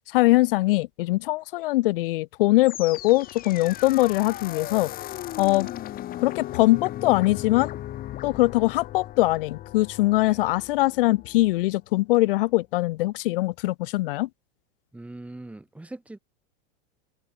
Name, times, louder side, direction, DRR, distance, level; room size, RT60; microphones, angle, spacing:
voice 1, 0.1-4.9 5.4-5.7 6.2-7.7 8.2-14.3, left 19 dB, 70° left, 1.4 m, -22 dB
sound 1, 2.6-11.8, left 13 dB, 30° left, 7.6 m, -37 dB
voice 2, 14.9-16.2, right 2 dB, 5° right, 4.3 m, -41 dB
supercardioid pair, 160°, 29 cm